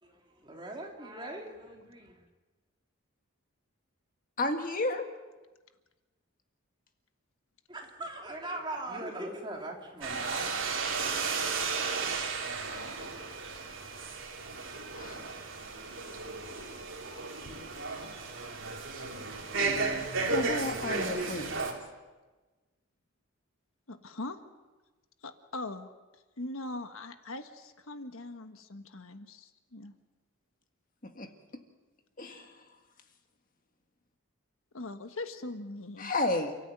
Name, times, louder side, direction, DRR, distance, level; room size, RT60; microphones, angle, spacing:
voice 1, 0.0-2.3 7.7-11.2, right 1 dB, 20° right, 0 dB, 3.2 m, -41 dB
voice 2, 4.4-5.1 15.0-15.2 20.3-21.5 31.0-31.3 32.2-32.5 36.0-36.6, left 2 dB, 40° left, 5 dB, 1.8 m, -32 dB
sound 1, 10.0-21.7, right 4 dB, 60° right, 3.4 m, -34 dB
voice 3, 23.9-24.4 25.2-29.9 34.7-36.1, left 2 dB, 75° left, 8 dB, 1.4 m, -41 dB
29.5 x 14.0 x 9.2 m, 1.2 s
head